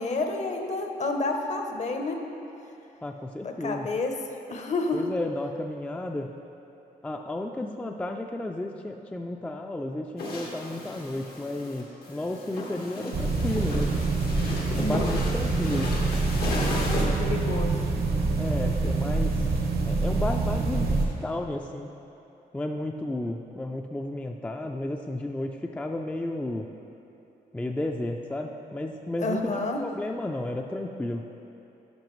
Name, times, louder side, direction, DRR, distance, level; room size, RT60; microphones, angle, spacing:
voice 1, 0.0-2.2 3.4-4.1 4.5-5.0 12.6-13.2 14.8-15.0 16.5-17.7 29.2-29.8, left 3 dB, 45° left, 4 dB, 0.7 m, -30 dB
voice 2, 3.0-3.9 4.9-6.3 7.0-13.9 14.8-16.0 18.4-19.5 19.8-21.9 22.5-26.7 27.5-29.5 29.8-31.2, left 1 dB, 10° left, 3 dB, 0.3 m, -32 dB
sound 1, 10.2-17.0, left 2 dB, 90° left, 1.3 m, -35 dB
sound 2, 13.1-21.1, right 3 dB, 75° right, 1.0 m, -26 dB
10.5 x 5.7 x 3.1 m, 2.9 s
cardioid pair, 90°, 16 cm